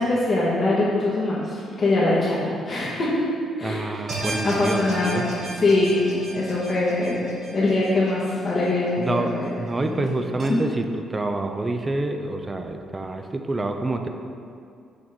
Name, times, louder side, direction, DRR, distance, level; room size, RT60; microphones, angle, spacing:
voice 1, 0.0-3.2 3.6-4.0 4.4-5.3 5.5-7.2 7.5-10.1, left 2 dB, 45° left, -9 dB, 1.2 m, -23 dB
voice 2, 3.6-5.2 9.0-14.1, right 2 dB, 25° right, 5 dB, 0.5 m, -27 dB
sound 1, 4.1-9.3 9.7-9.8 10.4-10.5, right 2 dB, 50° right, 1.0 m, -35 dB
6.4 x 3.6 x 4.5 m, 2.4 s
cardioid pair, 90°, 0 cm